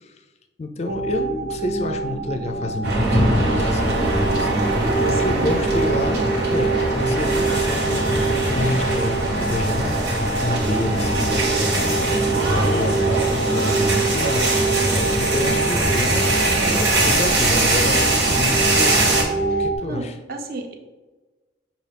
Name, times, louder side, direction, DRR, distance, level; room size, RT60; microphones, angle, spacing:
voice 1, 0.6-9.9 10.4-14.4 15.2-19.2 19.6-20.2, left 2 dB, 35° left, 5 dB, 0.4 m, -28 dB
sound 1, 0.9-19.8, right 3 dB, 90° right, 0.9 m, -25 dB
sound 2, 2.8-19.2, right 2 dB, 70° right, 1.2 m, -21 dB
voice 2, 4.8-5.5 15.4-15.6 19.5-20.7, right 2 dB, 50° right, 4 dB, 0.5 m, -31 dB
6.0 x 2.4 x 3.3 m, 1.2 s
head